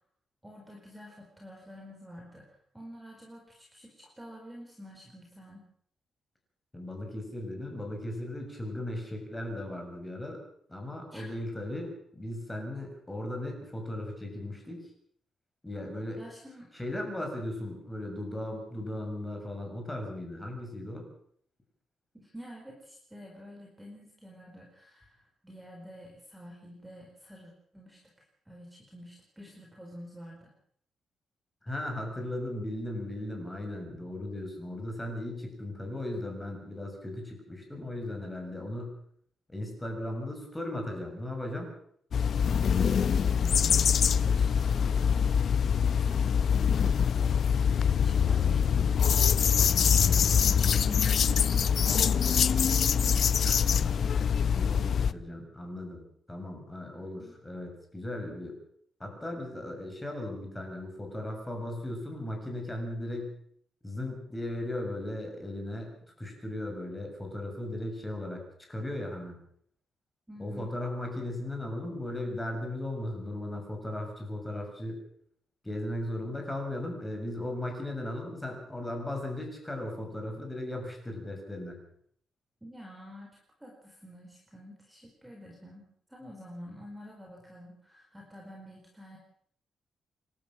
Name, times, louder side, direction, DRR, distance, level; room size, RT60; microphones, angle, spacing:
voice 1, 0.4-5.7 11.1-11.3 16.2-16.7 22.1-30.5 42.8-45.3 45.9-53.9 57.2-57.3 70.3-70.7 82.6-89.2, equal, 5° right, 0 dB, 4.7 m, -48 dB
voice 2, 6.7-10.4 10.7-14.9 15.6-16.2 16.7-21.0 31.6-38.9 39.5-41.7 53.4-53.6 54.5-58.5 59.0-63.3 63.8-65.9 66.2-68.4 68.7-69.4 70.4-75.0 75.6-81.8, left 1 dB, 10° left, 2 dB, 6.8 m, -37 dB
sound 1, 42.1-55.1, left 7 dB, 55° left, 0.8 m, -24 dB
28.5 x 12.5 x 7.6 m, 0.65 s
cardioid pair, 135°, 0 cm